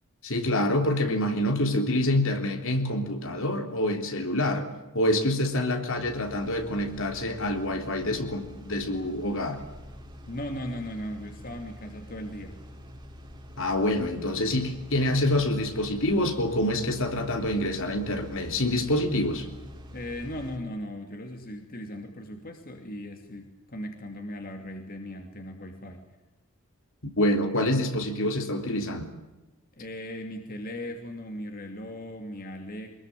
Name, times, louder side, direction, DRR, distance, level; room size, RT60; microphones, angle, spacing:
voice 1, 0.2-9.6 13.6-19.5 27.2-29.1, left 1 dB, 60° left, 5 dB, 3.6 m, -26 dB
sound 1, 6.0-20.6, equal, 20° right, 3.5 m, -46 dB
voice 2, 10.3-12.6 19.9-26.0 29.8-32.9, left 1 dB, 40° left, 4 dB, 2.7 m, -38 dB
24.5 x 21.5 x 9.2 m, 1.1 s
head